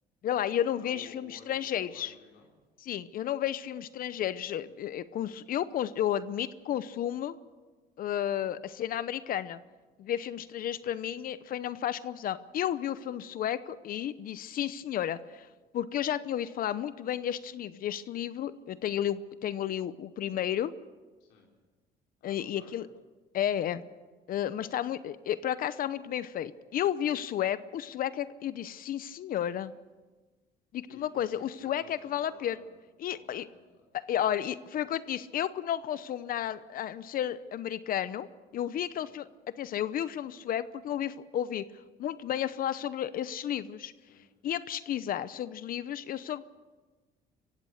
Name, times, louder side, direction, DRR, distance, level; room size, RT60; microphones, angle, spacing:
voice 1, 0.2-2.1 2.8-7.3 8.0-9.6 10.0-15.5 15.7-20.7 22.2-22.9 23.3-23.8 24.3-29.7 30.7-32.6 33.0-33.5 33.9-38.3 38.5-39.3 39.6-41.6 42.0-43.9 44.4-46.4, left 10 dB, 60° left, 15 dB, 0.8 m, -32 dB
voice 2, 0.8-2.5 10.8-11.0 21.2-21.5 22.2-22.8 30.9-33.8 38.8-39.1 44.0-44.3, left 6 dB, 90° left, -2 dB, 3.9 m, -55 dB
25.5 x 16.0 x 6.5 m, 1.3 s
cardioid pair, 110°, 17 cm